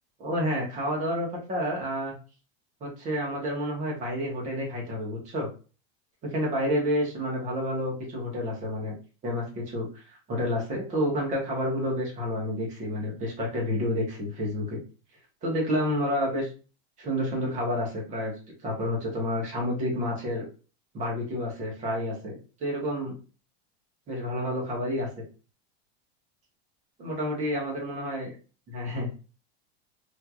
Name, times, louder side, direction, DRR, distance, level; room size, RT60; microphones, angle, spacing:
voice 1, 0.2-2.2 2.8-5.5 6.2-8.9 9.2-14.8 15.4-16.5 17.0-18.3 18.6-20.4 20.9-23.1 24.1-25.1 27.0-28.3 28.7-29.1, equal, 20° right, -2 dB, 1.1 m, -29 dB
3.2 x 2.8 x 2.3 m, 0.35 s
supercardioid pair, 165°, 32 cm